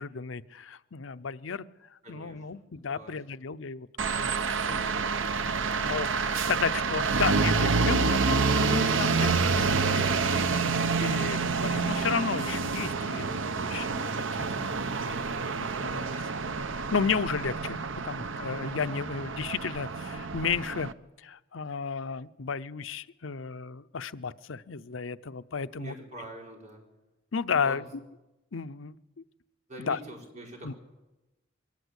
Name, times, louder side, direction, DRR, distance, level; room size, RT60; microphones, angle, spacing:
voice 1, 0.0-1.6 1.9-4.3 4.7-5.1 5.4-16.3 16.6-20.9 21.2-26.0 27.3-27.8 28.5-29.0 29.8-30.0 30.6-30.7, left 5 dB, 85° left, 14 dB, 0.7 m, -33 dB
voice 2, 2.0-2.4 2.9-3.1 18.1-18.3 25.8-26.8 27.6-27.8 29.7-30.8, right 1 dB, 40° right, 0 dB, 5.0 m, -45 dB
sound 1, 4.0-20.9, right 4 dB, 75° right, 0.9 m, -28 dB
23.0 x 17.5 x 8.2 m, 1.0 s
head